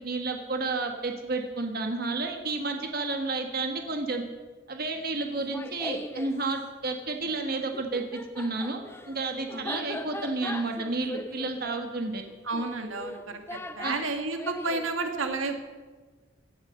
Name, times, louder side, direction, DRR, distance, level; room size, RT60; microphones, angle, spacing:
voice 1, 0.0-4.2 4.7-12.2 13.8-13.9, right 3 dB, 50° right, 4 dB, 1.5 m, -31 dB
Laughter, 5.3-6.4 7.6-14.9, left 2 dB, 10° left, 0.7 m, -40 dB
voice 2, 12.4-15.5, right 3 dB, 90° right, 6 dB, 1.9 m, -31 dB
17.5 x 11.5 x 6.5 m, 1.3 s
head